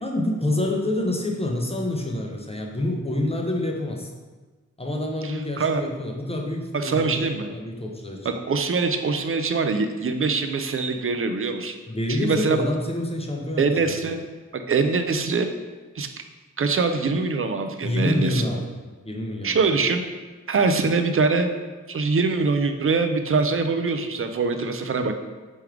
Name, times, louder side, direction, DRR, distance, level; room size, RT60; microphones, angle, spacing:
voice 1, 0.0-4.1 4.8-7.2 7.5-8.3 11.9-14.1 17.8-18.7 19.0-19.6, left 1 dB, 20° left, 1 dB, 0.6 m, -27 dB
voice 2, 5.2-5.8 6.7-7.5 8.3-11.8 12.1-12.6 13.6-14.2 14.5-15.5 16.0-16.1 16.6-18.4 19.4-20.0 20.5-21.5 21.9-25.1, right 4 dB, 45° right, 6 dB, 0.4 m, -23 dB
3.5 x 3.2 x 4.8 m, 1.3 s
wide cardioid pair, 70°, 31 cm